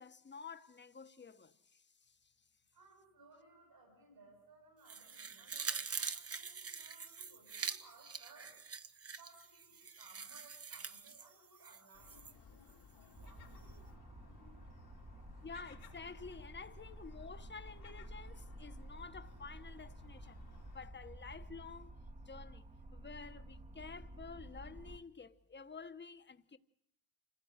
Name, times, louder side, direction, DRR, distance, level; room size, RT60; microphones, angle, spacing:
voice 1, 0.0-2.3 15.4-20.4 20.7-21.9 22.3-26.6, left 5 dB, 30° left, 1.1 m, -51 dB
voice 2, 2.7-8.5 9.1-13.8, right 3 dB, 75° right, 7.3 m, -62 dB
sound 1, 4.9-12.3 12.7-12.8, right 5 dB, 40° right, 1.1 m, -44 dB
Gull seagull, 11.9-20.9, left 6 dB, 85° left, 3.0 m, -60 dB
sound 2, 13.1-25.0, right 1 dB, 20° right, 1.2 m, -52 dB
27.5 x 16.0 x 8.0 m
cardioid pair, 100°, 37 cm